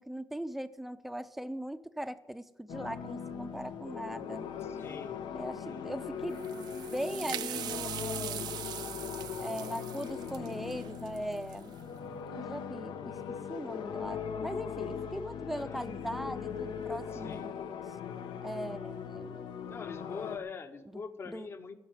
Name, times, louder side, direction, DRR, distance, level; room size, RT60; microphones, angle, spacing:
voice 1, 0.0-4.5 5.3-6.4 6.9-8.6 9.4-11.7 12.3-13.1 13.5-17.5 18.4-19.4 20.9-21.5, right 1 dB, ahead, 12 dB, 0.5 m, -40 dB
sound 1, 2.7-20.4, left 7 dB, 85° left, 0.9 m, -40 dB
voice 2, 4.6-5.2 5.6-5.9 15.5-15.8 17.1-17.5 19.7-21.8, left 5 dB, 35° left, 10 dB, 0.9 m, -43 dB
sound 2, 6.3-11.8, right 12 dB, 70° right, 0.4 m, -41 dB
15.0 x 6.5 x 9.0 m, 0.97 s
cardioid pair, 165°, 7 cm